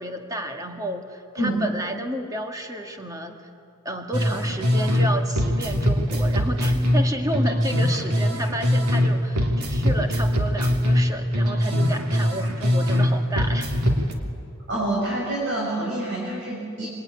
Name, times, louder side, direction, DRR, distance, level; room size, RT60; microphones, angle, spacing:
voice 1, 0.0-3.4 3.8-13.7, right 1 dB, 15° right, 4 dB, 1.9 m, -31 dB
sound 1, 4.1-5.1 5.4-9.1 9.4-13.1 13.4-14.1, equal, 90° right, 3.1 m, -22 dB
voice 2, 14.7-16.9, right 1 dB, 55° right, -3 dB, 6.0 m, -27 dB
26.5 x 22.5 x 9.8 m, 2.6 s
head